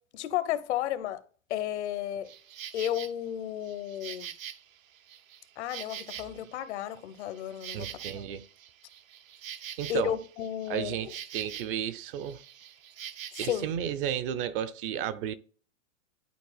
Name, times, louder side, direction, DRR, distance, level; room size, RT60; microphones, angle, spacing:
voice 1, 0.1-1.2 1.5-2.3 2.7-4.3 5.6-7.9 8.1-8.3 9.9-11.1 13.4-13.6, left 11 dB, 60° left, 0.9 m, -33 dB
Insect, 2.2-3.1 3.6-6.6 7.0-11.9 12.1-13.6, right 10 dB, 80° right, 0.9 m, -44 dB
voice 2, 7.7-8.4 9.8-10.2 10.7-12.4 13.4-15.3, right 10 dB, 45° right, 0.6 m, -33 dB
11.5 x 4.2 x 2.3 m
hypercardioid pair, 125°, 40 cm